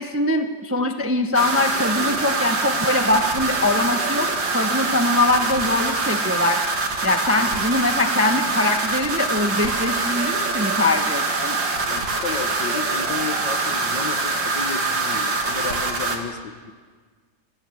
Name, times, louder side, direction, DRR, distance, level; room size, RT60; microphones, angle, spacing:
voice 1, 0.0-4.3 4.5-6.6 7.0-11.6, left 2 dB, 10° right, 6 dB, 0.7 m, -22 dB
sound 1, 1.3-16.2, right 3 dB, 80° right, 3.1 m, -24 dB
voice 2, 11.9-16.7, left 5 dB, 75° left, 8 dB, 2.1 m, -33 dB
28.0 x 16.5 x 7.8 m, 1.5 s
omnidirectional pair, 2.0 m